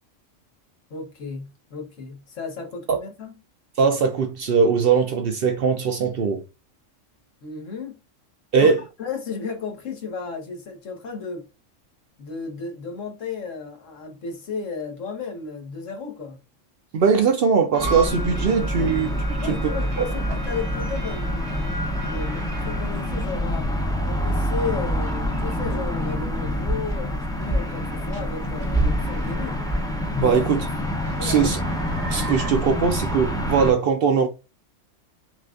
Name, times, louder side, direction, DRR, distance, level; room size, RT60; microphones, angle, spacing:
voice 1, 0.9-3.3 7.4-8.0 8.6-8.7 9.0-11.5 12.2-16.4 19.4-21.8 22.0-23.7 24.0-29.7 30.2-30.4 31.0-31.5, left 4 dB, 80° left, 1.4 m, -34 dB
voice 2, 3.8-6.4 8.5-8.8 16.9-19.7 30.2-30.7 31.2-31.6 32.1-34.3, right 6 dB, 60° right, 0.6 m, -20 dB
sound 1, 17.7-32.8, right 2 dB, 80° right, 1.1 m, -39 dB
sound 2, 17.8-33.7, equal, 5° left, 0.4 m, -26 dB
5.8 x 2.4 x 2.4 m
omnidirectional pair, 1.3 m